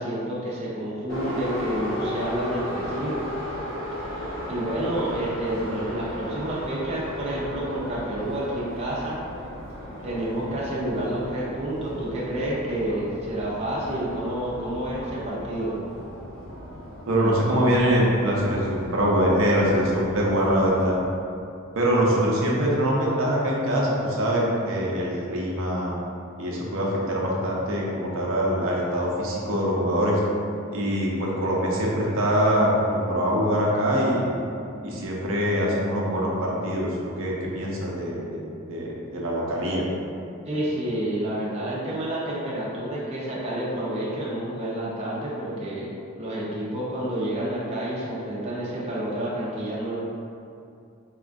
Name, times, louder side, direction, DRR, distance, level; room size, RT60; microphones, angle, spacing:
voice 1, 0.0-3.2 4.1-9.2 10.0-15.8 39.1-39.2 40.5-50.0, right 1 dB, 30° right, -7 dB, 0.5 m, -29 dB
Subway metro underground, 1.1-20.9, equal, 65° left, 1.0 m, -36 dB
voice 2, 17.1-21.0 21.7-25.9 26.4-30.2 30.7-34.4 34.8-39.8, equal, 85° right, -4 dB, 0.5 m, -23 dB
3.5 x 2.3 x 2.5 m, 2.5 s
head